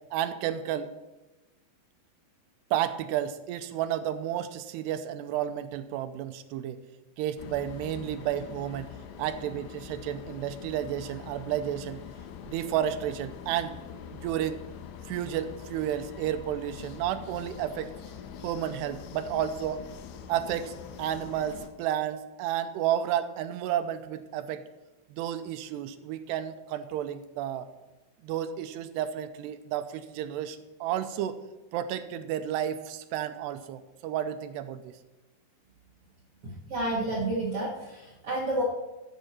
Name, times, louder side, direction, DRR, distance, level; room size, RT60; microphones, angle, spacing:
voice 1, 0.1-0.9 2.7-6.8 7.2-12.0 12.5-13.8 14.1-14.6 15.1-17.9 18.4-19.9 20.3-24.6 25.1-27.7 28.2-31.4 31.7-34.9, right 11 dB, 85° right, 10 dB, 2.7 m, -32 dB
sound 1, 7.4-21.7, left 8 dB, 85° left, 3.2 m, -44 dB
voice 2, 36.4-38.6, right 2 dB, 50° right, -4 dB, 1.7 m, -30 dB
14.0 x 9.0 x 4.3 m, 1.1 s
omnidirectional pair, 4.9 m